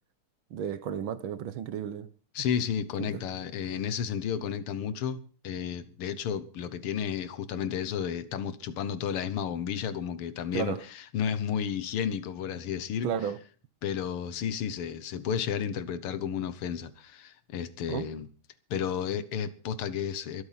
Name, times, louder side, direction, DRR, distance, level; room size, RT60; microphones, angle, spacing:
voice 1, 0.5-2.1 3.0-3.1 10.5-10.8 13.0-13.4 17.9-18.1, right 8 dB, 70° right, 1.7 m, -33 dB
voice 2, 2.3-13.1 13.8-18.3 18.7-20.4, left 8 dB, 80° left, 2.0 m, -32 dB
22.5 x 8.4 x 5.7 m
omnidirectional pair, 2.4 m